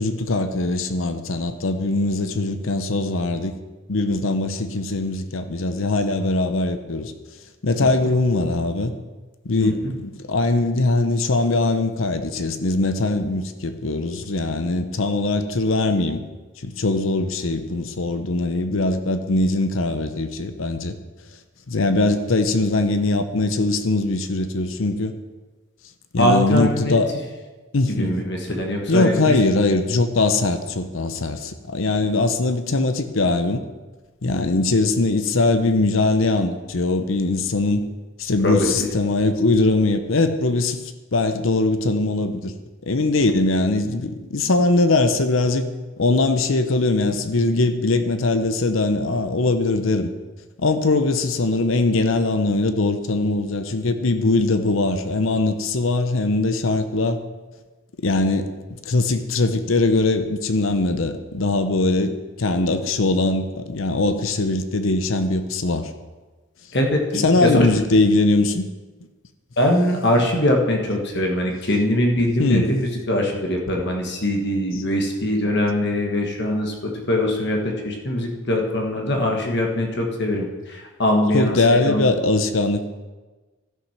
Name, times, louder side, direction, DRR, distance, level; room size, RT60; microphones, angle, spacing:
voice 1, 0.0-3.5 3.9-7.1 7.6-8.9 9.4-16.2 16.6-20.9 21.7-25.1 26.1-27.1 27.7-28.1 28.9-33.6 34.2-37.8 38.2-40.8 41.1-42.5 42.9-45.6 46.0-50.1 50.6-57.2 58.0-58.5 58.9-65.9 67.1-68.7 72.4-72.7 81.3-82.8, left 2 dB, 70° left, 9 dB, 0.8 m, -21 dB
voice 2, 9.6-9.9 26.2-26.9 27.9-29.3 38.4-38.9 66.7-67.7 69.6-82.1, left 1 dB, 55° left, 1 dB, 1.5 m, -22 dB
12.5 x 6.0 x 5.7 m, 1.2 s
head